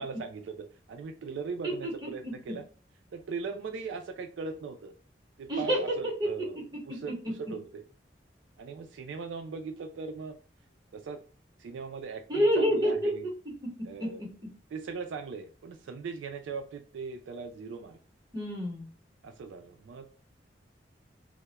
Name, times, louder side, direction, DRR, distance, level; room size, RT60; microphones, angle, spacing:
voice 1, 0.0-2.6 3.1-4.9 5.4-7.8 8.6-10.4 10.9-11.2 11.6-13.3 13.9-14.2 14.7-18.0 19.2-20.1, right 5 dB, 85° right, 6 dB, 0.3 m, -39 dB
voice 2, 1.6-2.3 5.5-6.3 7.2-7.3 12.3-13.1 13.8-14.3 18.3-18.9, equal, 25° right, -3 dB, 0.9 m, -28 dB
2.2 x 2.0 x 2.8 m, 0.39 s
head